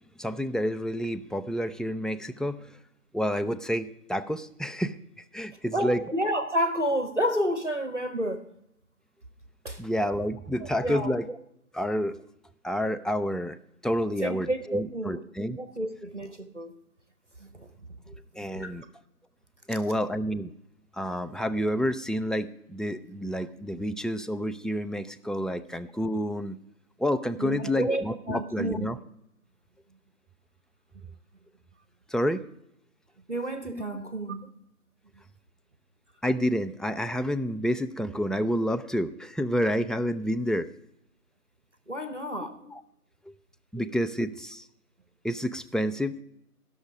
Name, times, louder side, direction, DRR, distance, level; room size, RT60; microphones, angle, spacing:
voice 1, 0.2-2.7 3.1-6.0 9.8-11.4 11.7-12.2 12.6-13.6 13.8-15.6 18.1-18.8 19.7-20.5 20.9-26.6 27.0-29.0 32.1-32.4 33.7-33.8 36.2-40.7 42.6-42.8 43.3-43.4 43.7-44.7 45.2-46.2, equal, ahead, 0.3 m, -29 dB
voice 2, 5.7-8.5 9.6-9.8 10.6-11.1 14.2-15.2 15.6-16.7 17.4-17.7 18.5-18.7 27.4-28.9 33.3-34.5 41.9-42.6 43.8-43.9, right 1 dB, 50° right, 0.8 m, -30 dB
16.5 x 6.4 x 4.9 m
figure-of-eight pair, 175°, 45 cm